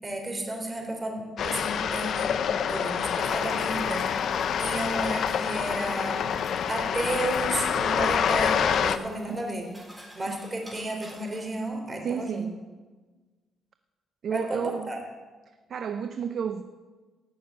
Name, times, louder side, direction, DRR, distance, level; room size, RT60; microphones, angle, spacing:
voice 1, 0.0-2.4 2.7-4.3 4.6-6.3 6.7-9.7 10.1-12.5 14.3-15.1, right 1 dB, 25° right, 2 dB, 3.6 m, -32 dB
sound 1, 1.4-9.0, left 8 dB, 65° left, 0.7 m, -27 dB
sound 2, 3.2-11.7, equal, 5° right, 4.1 m, -53 dB
voice 2, 12.0-12.6 14.2-14.9 15.7-16.6, right 7 dB, 60° right, 9 dB, 0.7 m, -31 dB
17.0 x 6.5 x 8.5 m, 1.3 s
cardioid pair, 90°, 0 cm